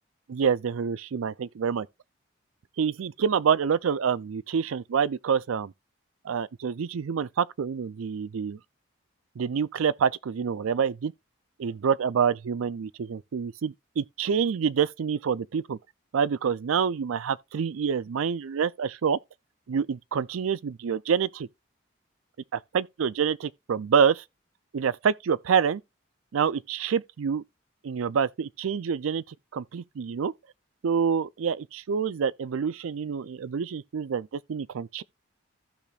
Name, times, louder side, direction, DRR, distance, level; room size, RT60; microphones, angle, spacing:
voice 1, 0.3-1.9 2.8-5.7 6.2-8.6 9.4-11.1 11.6-15.8 16.1-19.2 19.7-21.5 22.5-24.2 24.7-25.8 26.3-27.4 27.8-29.2 29.5-30.3 30.8-35.0, right 7 dB, 85° right, 0.4 m, -27 dB
15.0 x 5.0 x 2.4 m
head